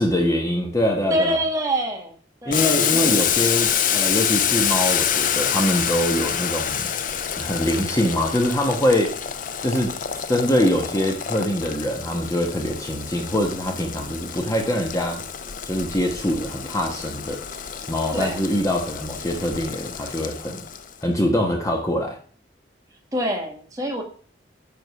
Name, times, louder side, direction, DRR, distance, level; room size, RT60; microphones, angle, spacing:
voice 1, 0.0-1.4 2.4-6.9 7.4-9.1 9.6-9.9 10.3-15.2 15.6-17.4 17.9-20.6 21.0-22.2, left 1 dB, 15° left, 2 dB, 1.1 m, -23 dB
voice 2, 1.1-2.1 2.4-3.1 18.1-18.4 23.1-24.0, equal, 20° right, 1 dB, 1.6 m, -25 dB
Boiling, 2.5-20.9, left 8 dB, 45° left, 0.5 m, -27 dB
9.4 x 3.7 x 5.5 m, 0.42 s
head